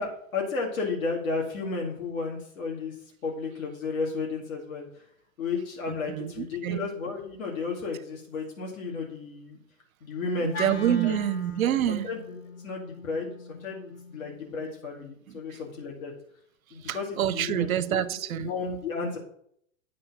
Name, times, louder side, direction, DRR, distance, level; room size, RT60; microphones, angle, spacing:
voice 1, 0.0-2.9 3.2-4.9 5.4-9.6 10.0-10.6 10.9-11.2 11.9-12.2 12.6-16.1 16.7-18.0 18.4-19.2, left 4 dB, 80° left, 2.4 m, -33 dB
voice 2, 5.9-6.9 10.4-12.1 16.8-18.5, right 11 dB, 85° right, 0.6 m, -27 dB
Wind instrument woodwind instrument, 10.5-14.8, left 4 dB, 15° left, 0.4 m, -41 dB
8.7 x 3.9 x 5.8 m
hypercardioid pair, 135°, 41 cm